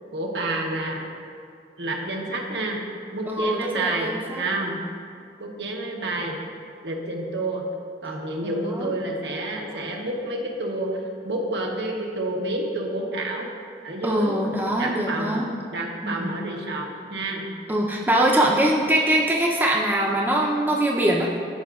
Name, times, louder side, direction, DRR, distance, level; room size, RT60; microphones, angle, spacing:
voice 1, 0.1-1.0 1.8-2.8 3.1-4.8 5.4-6.4 6.8-7.7 8.0-13.5 13.8-14.4 14.8-15.4 15.7-17.5, right 2 dB, 80° right, 0 dB, 1.0 m, -29 dB
voice 2, 3.3-4.4 8.4-8.9 14.0-15.4 16.0-16.3 17.7-21.3, right 1 dB, 10° right, -3 dB, 0.5 m, -23 dB
13.5 x 4.9 x 2.4 m, 2.3 s
head